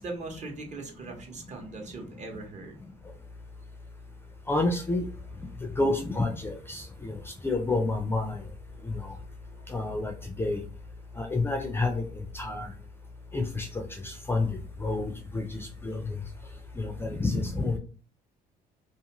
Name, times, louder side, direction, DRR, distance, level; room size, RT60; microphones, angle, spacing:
voice 1, 0.0-2.7 9.7-9.8, right 3 dB, 45° right, 2 dB, 0.8 m, -40 dB
voice 2, 4.5-5.1 5.6-8.5 8.8-9.1 9.7-10.6 11.2-12.7 13.3-16.2 16.8-17.8, left 2 dB, 15° left, 4 dB, 0.3 m, -29 dB
2.5 x 2.4 x 2.9 m, 0.38 s
cardioid pair, 110°, 17 cm